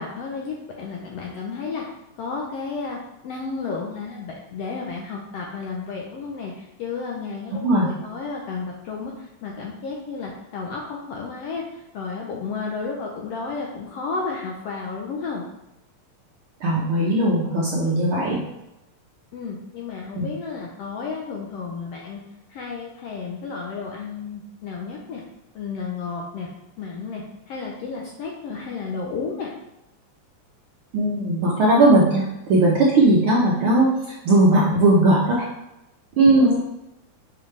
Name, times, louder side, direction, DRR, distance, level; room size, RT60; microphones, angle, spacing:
voice 1, 0.0-1.9 2.2-15.4 19.3-22.2 22.5-25.2 25.5-26.5 26.8-29.5 36.4-36.6, left 4 dB, 75° left, -1 dB, 1.5 m, -32 dB
voice 2, 7.5-7.9 16.6-18.4 20.1-20.3 30.9-33.9 34.2-35.5 36.2-36.6, right 2 dB, 65° right, -4 dB, 1.4 m, -18 dB
6.9 x 5.5 x 3.3 m, 0.89 s
omnidirectional pair, 3.5 m